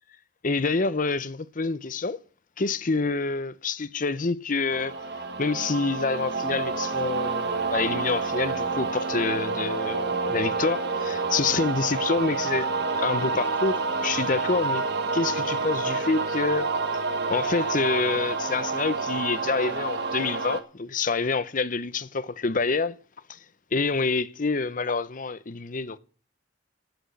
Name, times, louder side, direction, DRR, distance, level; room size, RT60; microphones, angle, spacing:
voice 1, 0.4-2.2 2.6-4.9 5.4-12.7 13.0-14.8 15.1-16.7 17.3-22.9 23.3-23.4 23.7-26.0, left 4 dB, 45° left, 0.8 m, -27 dB
sound 1, 4.7-20.6, right 4 dB, 60° right, 1.5 m, -28 dB
16.0 x 6.2 x 8.3 m
head